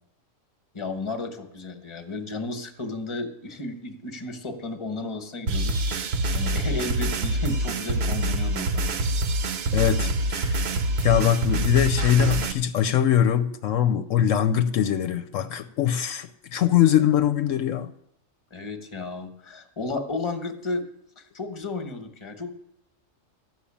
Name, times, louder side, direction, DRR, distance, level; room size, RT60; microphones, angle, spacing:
voice 1, 0.7-9.0 18.5-20.8 21.2-22.5, left 3 dB, 25° left, 1.1 m, -33 dB
sound 1, 5.5-12.5, right 1 dB, 55° right, 0.9 m, -25 dB
voice 2, 9.7-10.6 11.0-17.9, left 10 dB, 75° left, 1.0 m, -22 dB
13.0 x 6.2 x 8.6 m
omnidirectional pair, 1.4 m